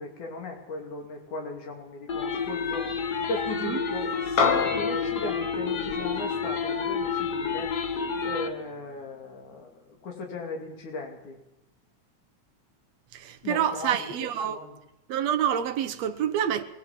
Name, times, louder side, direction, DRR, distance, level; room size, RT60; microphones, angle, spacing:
voice 1, 0.0-7.7 8.2-11.4 13.4-14.8, left 3 dB, 90° left, 4.3 m, -37 dB
sound 1, 2.1-8.5, left 5 dB, 45° left, 1.4 m, -30 dB
sound 2, 4.4-9.0, left 5 dB, 65° left, 2.9 m, -31 dB
voice 2, 13.1-14.6 15.1-16.6, right 9 dB, 65° right, 2.2 m, -27 dB
22.5 x 17.0 x 7.6 m
omnidirectional pair, 3.4 m